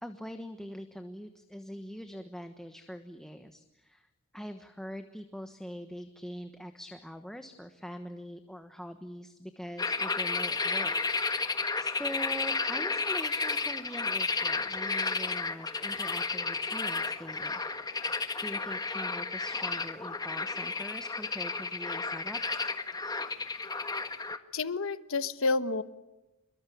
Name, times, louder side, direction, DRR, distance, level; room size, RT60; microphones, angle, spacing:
voice 1, 0.0-4.1 4.3-10.9 11.8-18.0 18.4-22.4, equal, ahead, 7 dB, 1.3 m, -43 dB
sound 1, 9.8-24.4, left 4 dB, 20° left, 1.5 m, -32 dB
voice 2, 24.5-25.8, left 3 dB, 65° left, 12 dB, 1.2 m, -29 dB
28.0 x 22.5 x 8.6 m, 0.97 s
head